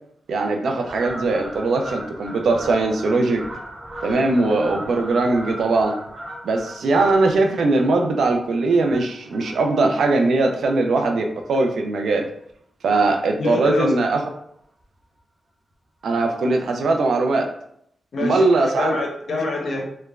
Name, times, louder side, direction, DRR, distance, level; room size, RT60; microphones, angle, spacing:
voice 1, 0.3-3.4 4.0-5.9 6.4-12.3 12.8-14.2 16.0-17.5 18.2-19.0, right 3 dB, 85° right, 3 dB, 0.4 m, -20 dB
Fowl, 0.8-11.6 12.0-12.3 13.0-13.6 13.9-14.0 14.2-14.3 14.6-14.7 15.0-15.2 16.2-16.3 16.8-16.9, right 1 dB, 35° right, 0.6 m, -38 dB
voice 2, 13.4-13.9 18.1-19.8, left 2 dB, 70° left, 1 dB, 0.6 m, -25 dB
3.0 x 2.1 x 2.3 m, 0.71 s
cardioid pair, 65°, 0 cm